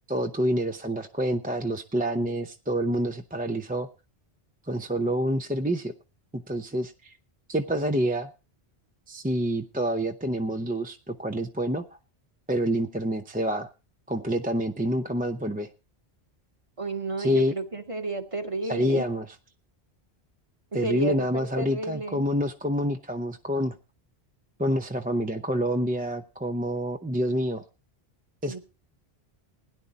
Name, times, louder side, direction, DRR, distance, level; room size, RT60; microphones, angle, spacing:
voice 1, 0.1-3.9 4.7-5.9 6.3-7.1 7.5-8.3 9.1-11.8 12.5-13.7 14.1-15.7 17.2-17.5 18.6-19.3 20.7-23.7 24.6-27.6 28.4-28.6, equal, 10° right, 6 dB, 0.5 m, -27 dB
voice 2, 16.8-19.0 20.7-22.2 28.5-28.6, right 2 dB, 30° right, 5 dB, 1.5 m, -32 dB
17.0 x 10.0 x 4.0 m, 0.31 s
omnidirectional pair, 1.1 m